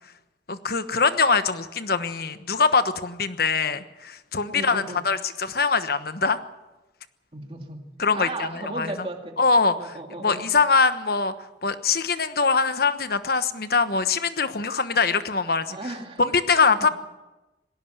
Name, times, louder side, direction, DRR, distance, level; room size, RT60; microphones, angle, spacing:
voice 1, 0.5-6.4 8.0-8.9 9.4-11.3 11.6-15.8 16.2-16.9, left 4 dB, 55° left, 11 dB, 1.2 m, -23 dB
voice 2, 4.5-5.0 7.3-7.9 8.1-9.4 9.8-10.4 15.7-16.2 16.8-16.9, right 2 dB, 30° right, 3 dB, 2.6 m, -35 dB
20.0 x 17.0 x 7.9 m, 1.0 s
head